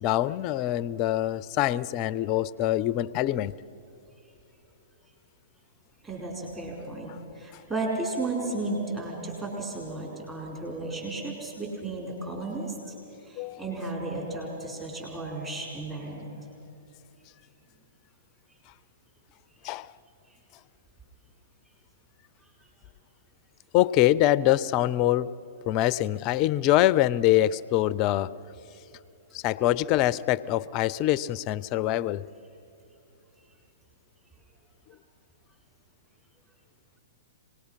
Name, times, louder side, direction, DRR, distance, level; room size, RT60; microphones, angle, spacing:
voice 1, 0.0-3.5 13.4-13.6 19.6-19.9 23.7-25.3 25.7-28.3 29.3-32.2, left 14 dB, 35° left, 0.4 m, -24 dB
voice 2, 6.0-12.9 13.2-16.3, right 2 dB, 15° right, 4.7 m, -34 dB
25.5 x 19.5 x 5.7 m
hypercardioid pair, 120°, 0 cm